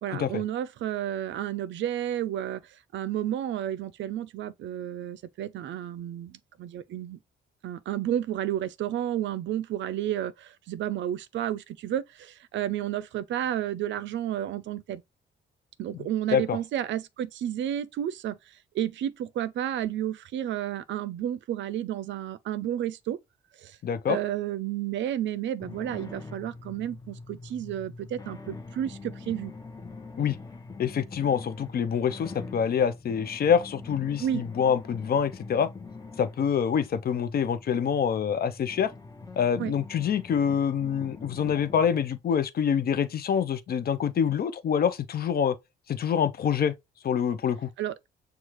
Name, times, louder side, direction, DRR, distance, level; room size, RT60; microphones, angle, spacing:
voice 1, 0.0-7.2 7.6-15.0 15.8-23.2 23.6-23.8 24.1-29.5 34.2-34.4 39.6-39.7 47.8-47.9, right 11 dB, 70° right, 0.5 m, -31 dB
voice 2, 23.8-24.2 30.2-30.4 30.8-35.7 36.2-38.9 39.4-45.6 45.9-46.7 47.0-47.7, left 7 dB, 50° left, 0.6 m, -26 dB
sound 1, 25.6-42.2, left 3 dB, 20° left, 0.8 m, -44 dB
6.2 x 2.3 x 3.0 m
cardioid pair, 90°, 20 cm